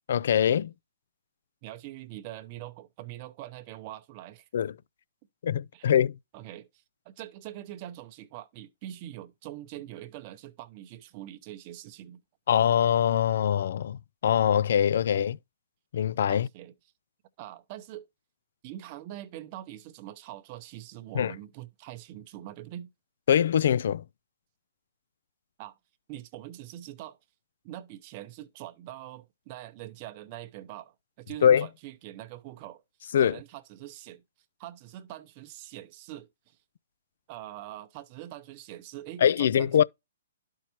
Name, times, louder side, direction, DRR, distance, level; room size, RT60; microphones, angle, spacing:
voice 1, 0.1-0.7 4.5-4.7 5.4-6.2 12.5-15.4 15.9-16.5 21.1-21.3 23.3-24.0 31.4-31.7 33.1-33.4 39.2-39.8, left 9 dB, 60° left, 0.3 m, -23 dB
voice 2, 1.6-4.5 5.7-5.9 6.3-6.7 7.0-12.2 15.2-15.3 16.3-16.7 17.4-18.1 18.6-22.9 25.6-25.8 26.1-27.2 27.6-32.8 33.2-34.2 34.6-36.6 37.3-39.8, right 13 dB, 35° right, 0.7 m, -43 dB
11.5 x 4.6 x 2.9 m
hypercardioid pair, 140°, 0 cm